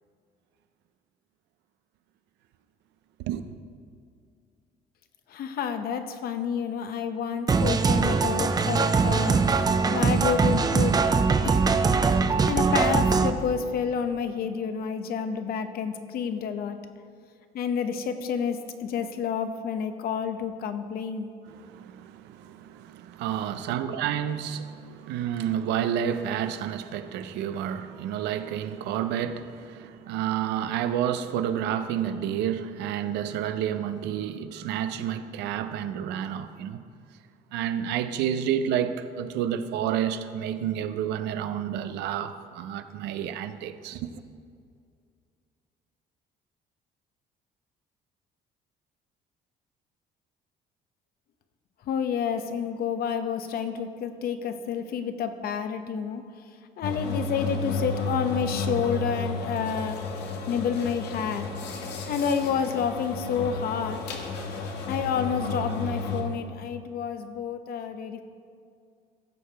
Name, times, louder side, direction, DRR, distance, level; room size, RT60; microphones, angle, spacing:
voice 1, 5.3-9.4 9.9-11.0 11.4-11.6 12.4-16.8 17.5-21.3 51.8-56.2 56.8-60.0 60.5-61.5 62.1-64.0 64.9-68.2, left 7 dB, 65° left, 0.8 m, -29 dB
sound 1, 7.5-13.3, right 4 dB, 25° right, 0.5 m, -22 dB
voice 2, 21.5-36.8 37.5-44.2, right 9 dB, 85° right, 0.6 m, -30 dB
sound 2, 56.8-66.2, left 3 dB, 85° left, 1.2 m, -32 dB
15.5 x 6.6 x 3.4 m
cardioid pair, 110°, 17 cm